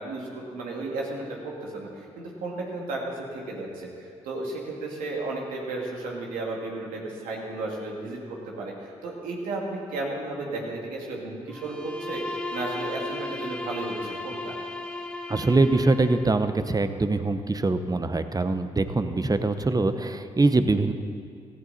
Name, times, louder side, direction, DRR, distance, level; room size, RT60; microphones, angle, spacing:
voice 1, 0.0-14.6, right 2 dB, 80° right, -2 dB, 2.5 m, -34 dB
Bowed string instrument, 11.5-16.4, left 2 dB, 5° left, 2.3 m, -35 dB
voice 2, 15.3-20.9, right 3 dB, 25° right, 10 dB, 1.1 m, -23 dB
17.5 x 15.0 x 4.3 m, 2.4 s
hypercardioid pair, 40°, 14 cm